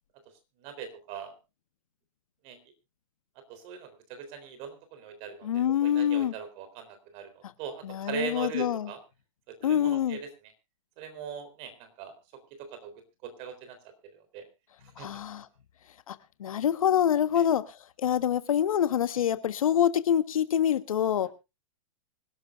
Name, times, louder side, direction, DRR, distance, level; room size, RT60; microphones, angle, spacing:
voice 1, 0.6-1.4 2.4-2.6 3.4-9.0 9.5-10.5 11.0-13.8 14.0-14.5 14.8-15.1 17.3-17.5, right 7 dB, 35° right, 10 dB, 3.7 m, -41 dB
voice 2, 5.4-6.3 7.8-8.9 9.6-10.2 15.0-15.5 16.1-21.3, left 9 dB, 80° left, 12 dB, 1.4 m, -26 dB
25.0 x 12.0 x 2.5 m, 0.28 s
hypercardioid pair, 145°, 17 cm